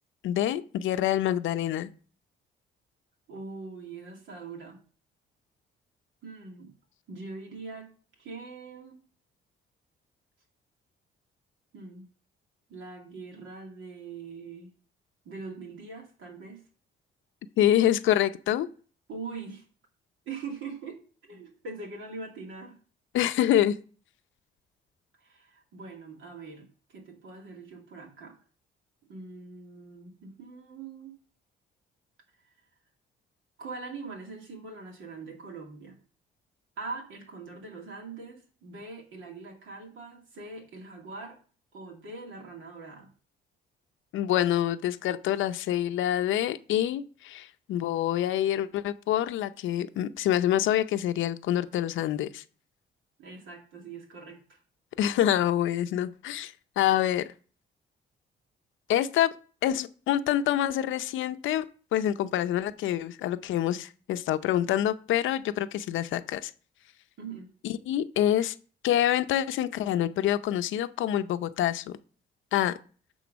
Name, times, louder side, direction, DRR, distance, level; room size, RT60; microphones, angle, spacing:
voice 1, 0.2-1.9 17.6-18.7 23.1-23.8 44.1-52.4 55.0-57.3 58.9-59.3 59.6-61.6 61.9-66.5 67.6-68.5 68.8-72.0 72.5-72.8, left 11 dB, 80° left, 12 dB, 0.6 m, -26 dB
voice 2, 3.3-4.8 6.2-6.7 7.1-7.9 8.2-9.0 11.7-12.1 12.7-14.7 15.2-16.6 19.1-19.6 20.3-22.8 25.2-28.4 29.1-31.1 33.6-36.0 36.8-41.4 41.7-43.1 53.2-54.6 67.2-67.5, right 4 dB, 80° right, 1 dB, 2.4 m, -42 dB
9.3 x 3.8 x 6.2 m, 0.41 s
cardioid pair, 90°, 20 cm